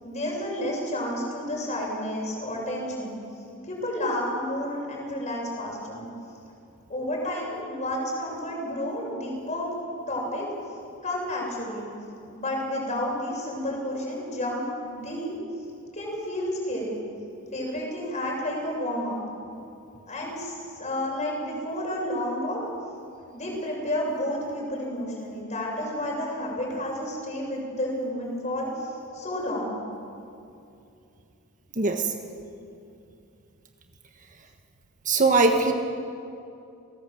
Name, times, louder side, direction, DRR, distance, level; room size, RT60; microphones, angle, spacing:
voice 1, 0.0-3.2 3.7-6.1 6.9-9.7 10.1-10.5 11.0-11.9 12.3-15.3 15.9-17.0 17.5-19.2 20.1-22.6 23.3-28.7 29.1-29.8, left 1 dB, 35° left, -1 dB, 7.2 m, -31 dB
voice 2, 31.8-32.1 35.0-35.7, right 3 dB, 40° right, 4 dB, 1.5 m, -20 dB
29.0 x 18.0 x 7.9 m, 2.6 s
head